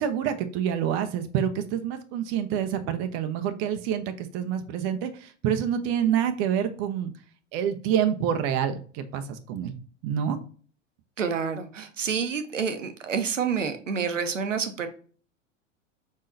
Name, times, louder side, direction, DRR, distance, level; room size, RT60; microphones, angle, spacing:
voice 1, 0.0-7.1 7.5-9.8 10.0-10.4, right 9 dB, 35° right, 8 dB, 0.6 m, -27 dB
voice 2, 11.2-14.9, right 6 dB, 80° right, 8 dB, 0.8 m, -28 dB
5.3 x 3.7 x 2.6 m, 0.42 s
figure-of-eight pair, 85°, 37 cm